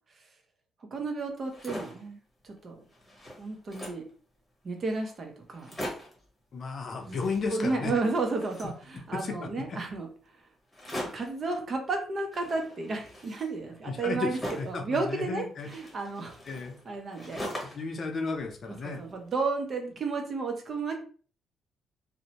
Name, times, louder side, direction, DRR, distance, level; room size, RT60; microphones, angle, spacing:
voice 1, 0.9-2.2 2.4-2.7 3.4-4.0 4.6-5.8 7.1-7.2 7.5-10.1 11.1-14.4 14.6-16.4 16.9-17.8 18.8-21.0, right 3 dB, 45° right, 3 dB, 0.7 m, -32 dB
sound 1, 1.3-2.1 2.6-2.7 2.9-4.1 4.8-4.9 5.1-5.2 5.5-6.2 7.0-9.3 10.7-11.4 12.3-14.8 15.6-17.9 18.3-19.2, equal, 5° left, 1.1 m, -41 dB
voice 2, 6.5-7.9 9.1-9.8 13.8-14.3 14.6-15.7 16.4-16.8 17.7-19.0, left 4 dB, 50° left, 4 dB, 0.5 m, -34 dB
2.6 x 2.1 x 2.8 m, 0.42 s
cardioid pair, 90°, 0 cm